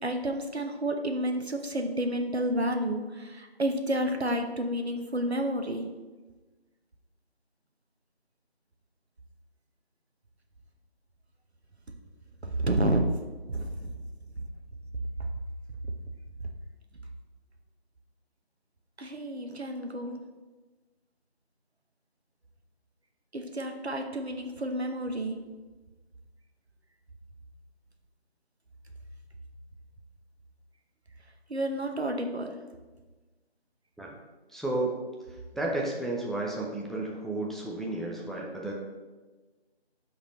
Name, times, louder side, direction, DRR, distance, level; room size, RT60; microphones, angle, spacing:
voice 1, 0.0-5.9 12.4-13.9 15.2-15.3 19.0-20.2 23.3-25.4 31.5-32.6, right 1 dB, 75° right, 5 dB, 1.0 m, -30 dB
voice 2, 34.5-35.0 35.5-38.7, right 2 dB, ahead, -2 dB, 0.5 m, -32 dB
10.5 x 4.0 x 3.1 m, 1.3 s
figure-of-eight pair, 180°, 32 cm